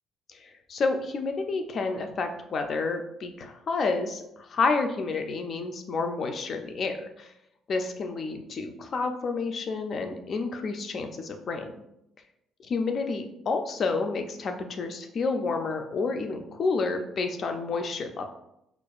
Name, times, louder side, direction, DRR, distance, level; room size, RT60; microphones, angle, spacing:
voice 1, 0.3-7.3 7.7-11.7 12.7-18.3, left 4 dB, 40° left, 6 dB, 0.3 m, -30 dB
4.4 x 2.4 x 2.3 m, 0.82 s
cardioid pair, 155°, 0 cm